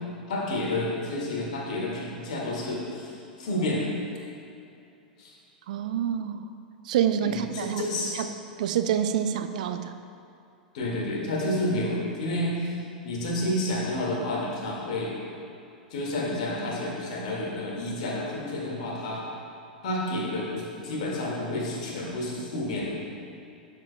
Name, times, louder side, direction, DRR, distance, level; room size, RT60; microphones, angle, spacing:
voice 1, 0.3-3.9 5.2-5.3 7.2-8.2 10.7-12.7 13.0-15.2 15.9-19.2 19.8-22.9, left 1 dB, 55° left, -3 dB, 1.9 m, -30 dB
voice 2, 5.7-6.5 6.9-7.8 8.1-8.3 8.6-9.9, right 9 dB, 55° right, 9 dB, 0.4 m, -27 dB
11.5 x 7.4 x 2.2 m, 2.7 s
figure-of-eight pair, 95°, 5 cm